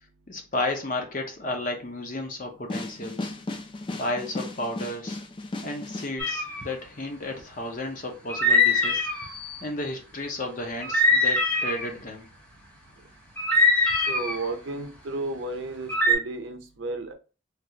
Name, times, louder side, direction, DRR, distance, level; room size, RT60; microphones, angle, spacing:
voice 1, 0.3-3.4 4.0-5.2 5.6-9.1 9.6-12.3, left 2 dB, 45° left, 0.7 m, -33 dB
sound 1, 2.7-6.1, left 2 dB, 25° left, 0.3 m, -35 dB
sound 2, 6.2-6.6 8.3-9.6 10.8-11.9 13.4-14.4 15.9-16.1, left 2 dB, 5° left, 0.8 m, -22 dB
voice 2, 14.1-17.1, right 2 dB, 80° right, 0.6 m, -33 dB
3.3 x 2.4 x 2.8 m
head